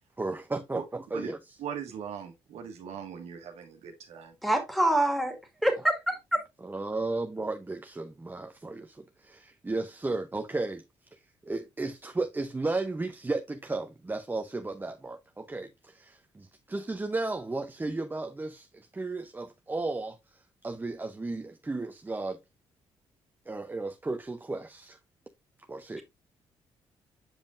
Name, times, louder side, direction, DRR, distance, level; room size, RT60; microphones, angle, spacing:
voice 1, 0.2-1.6 6.6-10.8 11.1-22.4 23.5-25.0 25.7-26.0, right 2 dB, 20° right, 0.7 m, -34 dB
voice 2, 1.6-4.3, right 8 dB, 75° right, 1.3 m, -40 dB
voice 3, 4.4-5.4 5.6-6.4, right 1 dB, ahead, 2.2 m, -25 dB
7.2 x 5.2 x 2.5 m
supercardioid pair, 60°, 11 cm